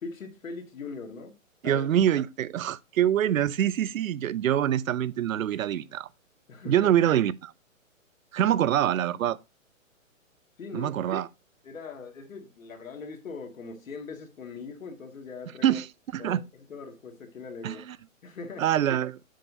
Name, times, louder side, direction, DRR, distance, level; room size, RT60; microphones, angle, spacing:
voice 1, 0.0-1.3 1.6-1.9 6.5-6.9 10.6-11.2 11.6-15.8 16.2-17.8 18.2-18.7, left 4 dB, 75° left, 2.2 m, -41 dB
voice 2, 1.6-6.1 6.7-7.5 8.3-9.4 10.7-11.3 15.6-15.9 16.1-16.4 17.6-17.8 18.6-19.2, right 11 dB, 75° right, 0.6 m, -25 dB
7.4 x 7.0 x 2.7 m
hypercardioid pair, 155°, 40 cm